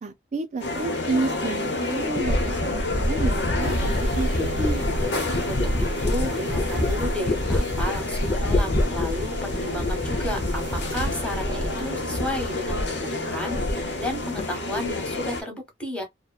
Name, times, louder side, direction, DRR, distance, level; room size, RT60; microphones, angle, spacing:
voice 1, 0.0-4.3 4.6-4.8, right 3 dB, 40° right, 0.4 m, -30 dB
sound 1, 0.6-15.4, left 2 dB, 75° left, 0.8 m, -29 dB
sound 2, 1.4-1.5 2.2-11.8 12.1-13.0 13.3-14.1 14.4-14.9, left 1 dB, 40° left, 0.4 m, -27 dB
sound 3, 3.6-12.8, right 2 dB, 90° right, 0.6 m, -37 dB
voice 2, 5.5-16.0, left 1 dB, 5° left, 1.0 m, -33 dB
2.8 x 2.1 x 2.3 m
head